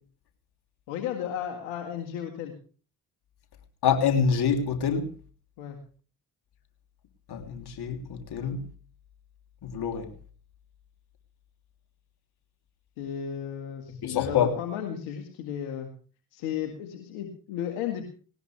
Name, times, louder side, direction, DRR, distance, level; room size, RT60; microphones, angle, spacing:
voice 1, 0.9-2.5 5.6-5.8 13.0-15.9 16.3-18.0, left 9 dB, 75° left, 3 dB, 2.0 m, -34 dB
voice 2, 3.8-5.1 7.3-8.6 9.6-10.1 14.0-14.5, left 7 dB, 60° left, 4 dB, 3.2 m, -26 dB
19.0 x 18.5 x 3.4 m, 0.40 s
hypercardioid pair, 40°, 44 cm